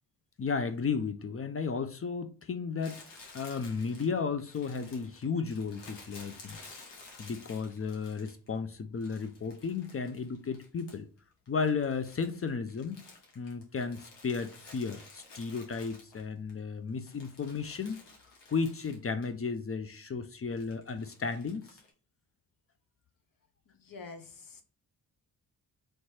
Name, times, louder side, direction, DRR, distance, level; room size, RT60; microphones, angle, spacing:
voice 1, 0.4-3.0 3.3-6.6 7.2-11.1 11.5-13.1 13.4-18.0 18.5-21.8, left 5 dB, 30° left, 0.5 m, -34 dB
Crumpling crinkling, 2.8-8.6 9.0-11.2 11.5-16.5 16.9-19.3 19.6-19.7 20.5-21.9, left 3 dB, 70° left, 1.6 m, -53 dB
voice 2, 23.7-24.6, left 4 dB, 50° left, 1.1 m, -47 dB
3.2 x 3.1 x 4.3 m
supercardioid pair, 55°, 43 cm